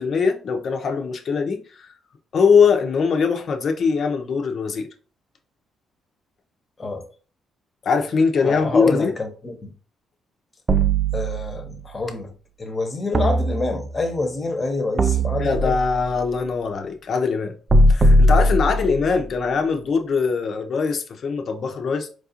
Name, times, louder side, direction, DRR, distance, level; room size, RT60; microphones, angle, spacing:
voice 1, 0.0-1.9 2.3-4.9 7.8-9.1 15.4-17.5 17.9-22.1, left 5 dB, 55° left, 0.7 m, -21 dB
voice 2, 8.4-9.5 11.1-12.3 12.6-15.8, left 2 dB, 30° left, 0.9 m, -26 dB
sound 1, 10.7-11.8 13.1-14.1 15.0-16.1 17.7-19.1, right 1 dB, 30° right, 0.4 m, -19 dB
4.5 x 2.4 x 2.8 m
cardioid pair, 90°, 0 cm